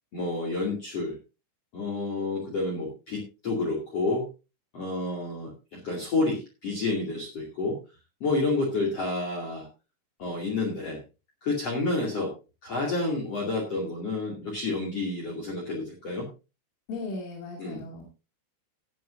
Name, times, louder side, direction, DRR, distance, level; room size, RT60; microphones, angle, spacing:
voice 1, 0.1-1.2 1.7-4.2 4.7-7.8 8.2-9.7 10.2-11.0 11.4-12.3 12.6-16.3 17.6-17.8, left 3 dB, 40° left, -1 dB, 2.8 m, -29 dB
voice 2, 16.9-18.0, left 3 dB, 85° left, -1 dB, 4.9 m, -36 dB
17.0 x 9.3 x 2.6 m, 0.30 s
omnidirectional pair, 5.5 m